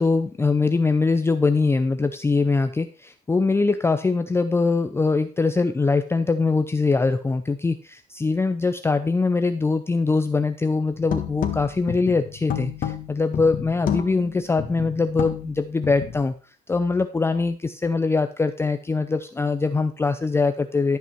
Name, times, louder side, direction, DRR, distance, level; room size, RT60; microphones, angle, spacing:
voice 1, 0.0-16.3 16.7-21.0, left 3 dB, 15° left, 9 dB, 0.5 m, -22 dB
sound 1, 10.9-16.3, left 9 dB, 55° left, 1.7 m, -30 dB
12.0 x 5.6 x 4.5 m, 0.37 s
cardioid pair, 110°, 17 cm